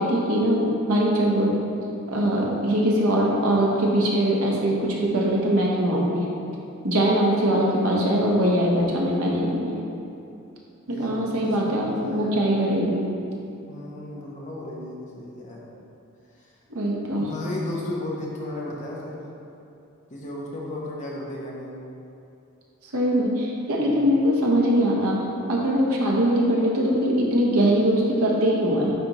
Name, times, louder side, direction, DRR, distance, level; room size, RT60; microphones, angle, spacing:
voice 1, 0.0-1.5 2.1-6.2 6.8-9.7 10.9-13.1 16.7-17.3 22.9-25.2 25.5-28.9, equal, 75° right, -3 dB, 1.1 m, -22 dB
voice 2, 10.9-12.4 13.7-15.6 17.2-19.2 20.1-21.8 23.8-24.2, left 1 dB, 35° left, -4 dB, 1.0 m, -34 dB
9.3 x 4.1 x 3.1 m, 2.7 s
head